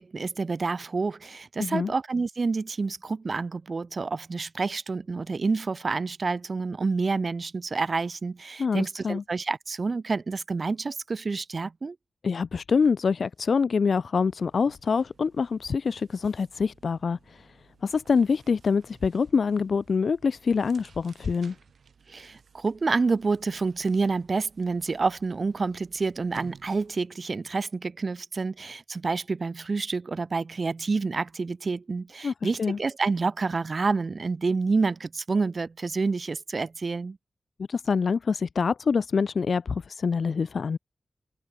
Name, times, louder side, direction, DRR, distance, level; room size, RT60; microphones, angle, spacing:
voice 1, 0.0-12.0 22.1-37.2, right 4 dB, 45° right, 0.5 m, -28 dB
voice 2, 1.6-1.9 8.6-9.2 12.2-17.6 17.8-21.6 32.2-32.8 37.7-40.8, left 5 dB, 65° left, 0.4 m, -25 dB
sound 1, 13.2-13.4 13.7-27.1, right 6 dB, 85° right, 2.8 m, -55 dB
wide cardioid pair, 145°, 0 cm